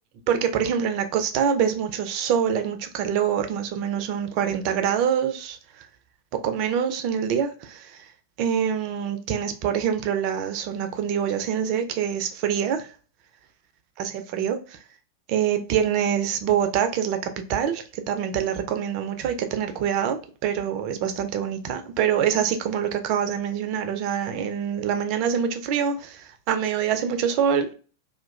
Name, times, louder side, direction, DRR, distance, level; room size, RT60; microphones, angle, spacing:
voice 1, 0.3-5.9 6.3-8.0 8.4-12.9 14.0-14.8 15.3-27.7, right 8 dB, 45° right, 0.4 m, -25 dB
2.9 x 2.2 x 2.2 m
figure-of-eight pair, 90°, 0 cm